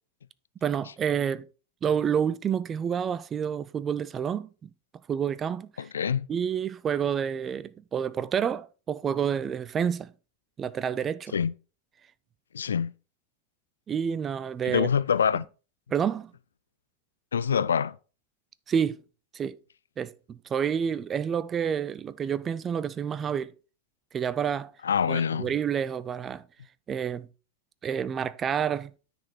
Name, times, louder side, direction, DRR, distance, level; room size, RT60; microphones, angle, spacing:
voice 1, 0.6-1.5 1.8-4.7 5.1-5.9 6.3-10.1 10.6-11.3 13.9-14.9 15.9-16.3 18.7-19.0 19.3-19.6 20.0-23.5 24.1-24.7 25.1-26.4 26.9-27.3 27.8-28.9, right 8 dB, 25° right, 0.4 m, -29 dB
voice 2, 5.8-6.3 11.3-11.5 12.5-12.9 14.7-15.4 17.3-17.9 24.8-25.5, left 7 dB, 70° left, 0.3 m, -25 dB
9.7 x 4.3 x 4.3 m
figure-of-eight pair, 90°, 0 cm